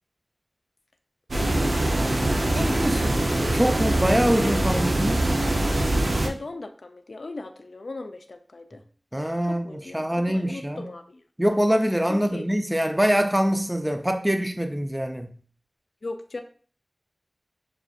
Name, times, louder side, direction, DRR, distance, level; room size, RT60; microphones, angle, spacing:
sound 1, 1.3-6.3, right 1 dB, 80° right, 0.6 m, -23 dB
voice 1, 1.4-2.2 2.5-3.0 3.3-4.0 4.4-4.8 6.2-8.8 9.4-11.2 12.1-12.4 16.0-16.4, left 2 dB, 85° left, 0.4 m, -37 dB
voice 2, 2.5-5.2 9.1-10.9 11.4-15.3, equal, 15° right, 0.4 m, -24 dB
6.6 x 2.5 x 2.3 m
wide cardioid pair, 55°, 0 cm